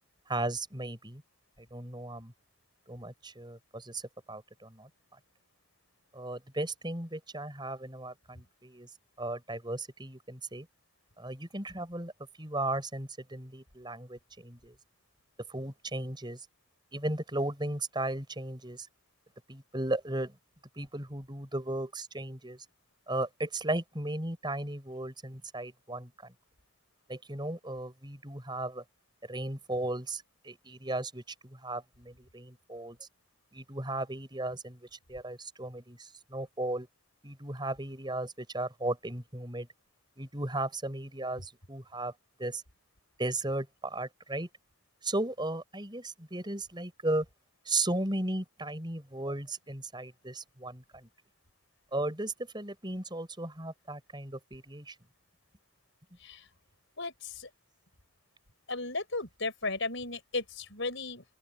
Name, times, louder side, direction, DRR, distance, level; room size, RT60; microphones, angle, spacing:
voice 1, 0.3-1.2 1.7-2.3 2.9-4.0 4.3-4.9 6.1-8.9 9.2-10.7 11.2-12.1 12.4-14.8 15.5-16.5 16.9-18.9 19.5-20.4 20.8-22.6 23.1-26.3 27.1-28.8 29.3-33.0 33.5-36.9 37.2-39.7 40.2-42.1 42.4-42.6 43.2-44.5 45.0-47.3 47.7-51.1 51.9-55.0, right 2 dB, 20° right, 5.7 m, -36 dB
voice 2, 57.0-57.5 58.7-61.2, left 3 dB, 55° left, 6.0 m, -35 dB
open air
head